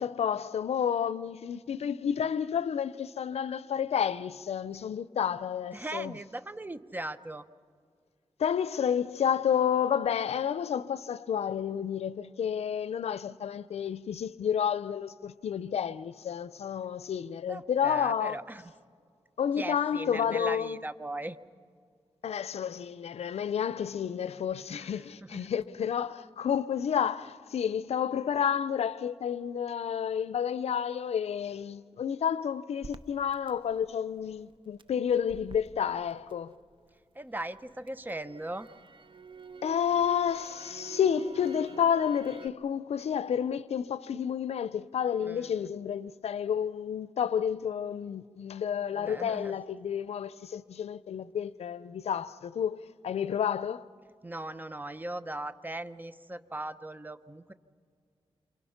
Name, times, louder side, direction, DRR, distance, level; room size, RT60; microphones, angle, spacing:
voice 1, 0.0-6.1 8.4-18.4 19.4-20.8 22.2-36.5 39.6-53.8, left 8 dB, 85° left, 0.5 m, -30 dB
voice 2, 5.7-7.4 17.5-18.6 19.6-21.4 24.7-25.5 37.1-38.7 45.2-45.7 48.9-49.5 54.2-57.5, right 1 dB, 20° right, 0.9 m, -39 dB
Crackle, 32.8-36.9 37.3-42.5, right 5 dB, 55° right, 0.8 m, -48 dB
27.5 x 26.5 x 5.8 m
wide cardioid pair, 90°, 10 cm